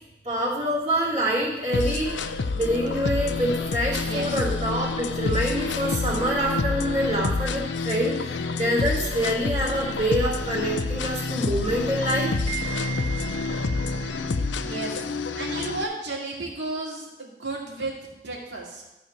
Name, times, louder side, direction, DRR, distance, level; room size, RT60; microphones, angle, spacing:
voice 1, 0.2-2.1 2.5-14.3, right 1 dB, 40° right, -7 dB, 2.5 m, -26 dB
sound 1, 1.7-15.8, left 3 dB, 90° left, 0.5 m, -28 dB
voice 2, 4.0-4.3 14.5-15.1 15.3-18.8, right 2 dB, 80° right, -2 dB, 2.4 m, -33 dB
12.0 x 4.4 x 7.3 m, 0.98 s
head